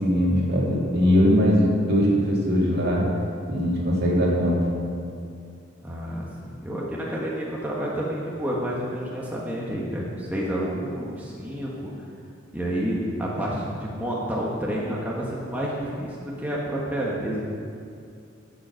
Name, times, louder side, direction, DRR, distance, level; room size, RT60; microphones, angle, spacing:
voice 1, 0.0-3.1 3.5-4.7, equal, 55° right, -4 dB, 2.6 m, -21 dB
voice 2, 5.8-11.9 12.5-17.4, equal, 10° right, -5 dB, 1.3 m, -29 dB
11.5 x 7.9 x 6.3 m, 2.4 s
head